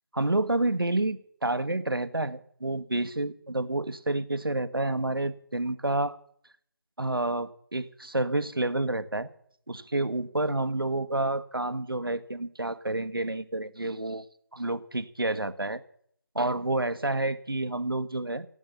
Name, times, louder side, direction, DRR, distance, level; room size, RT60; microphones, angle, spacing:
voice 1, 0.1-6.2 7.0-9.3 9.7-14.2 14.5-15.8 16.3-18.5, right 2 dB, 85° right, 12 dB, 1.3 m, -29 dB
16.0 x 8.9 x 6.9 m, 0.65 s
figure-of-eight pair, 165°, 12 cm